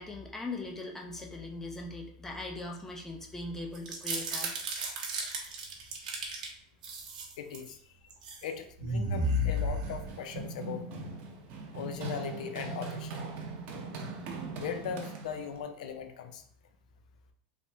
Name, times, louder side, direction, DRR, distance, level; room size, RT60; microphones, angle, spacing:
voice 1, 0.0-4.6, left 2 dB, 10° left, 0 dB, 0.5 m, -40 dB
sound 1, 3.7-6.5 6.8-7.7 8.1-8.4 8.8-10.4, equal, 85° right, 0.8 m, -33 dB
voice 2, 7.4-7.8 8.4-10.8 11.7-13.2 14.6-16.4, left 7 dB, 80° left, 8 dB, 0.4 m, -39 dB
Run, 9.2-15.6, right 3 dB, 45° right, 0.6 m, -41 dB
3.3 x 2.0 x 2.6 m, 0.63 s
supercardioid pair, 125°, 4 cm